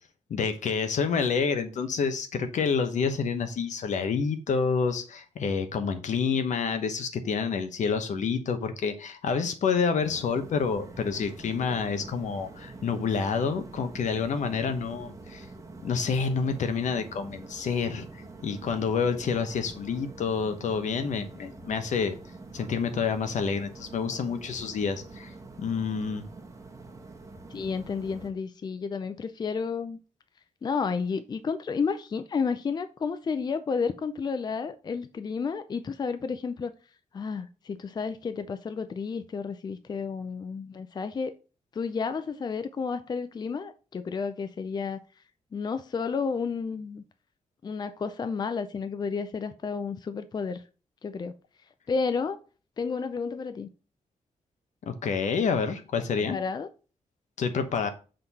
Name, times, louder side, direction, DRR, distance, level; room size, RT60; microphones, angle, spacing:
voice 1, 0.3-15.4 15.8-22.2 22.5-25.3 25.6-26.2 54.9-56.4 57.4-57.9, left 5 dB, 80° left, 1.0 m, -28 dB
sound 1, 10.0-28.3, right 3 dB, 25° right, 1.2 m, -46 dB
voice 2, 27.5-30.0 30.6-36.7 37.1-41.4 41.7-45.0 45.5-47.0 47.6-50.6 51.0-51.3 51.9-52.4 52.8-53.7 56.2-56.7, left 5 dB, 35° left, 0.4 m, -31 dB
6.6 x 3.9 x 4.1 m
wide cardioid pair, 130°, 13 cm